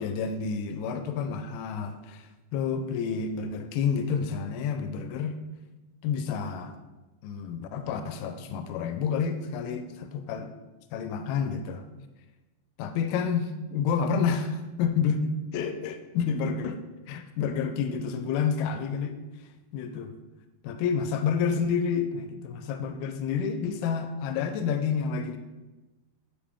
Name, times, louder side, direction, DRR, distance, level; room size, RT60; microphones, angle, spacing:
voice 1, 0.0-5.4 6.0-6.8 7.2-10.5 10.9-11.8 12.8-16.8 17.1-19.2 19.7-20.2 20.6-25.4, left 6 dB, 90° left, 9 dB, 2.5 m, -29 dB
10.0 x 5.0 x 3.5 m, 1.1 s
omnidirectional pair, 4.3 m